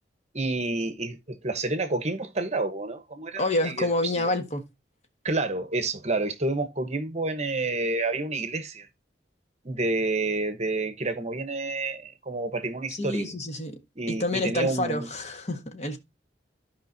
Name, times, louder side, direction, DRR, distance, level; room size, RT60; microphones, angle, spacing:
voice 1, 0.3-4.3 5.2-8.9 9.6-13.3 14.0-15.1, right 2 dB, 40° right, 1.0 m, -29 dB
voice 2, 3.4-4.6 12.9-13.7 14.1-16.0, left 2 dB, 40° left, 1.4 m, -28 dB
14.5 x 5.1 x 2.7 m
head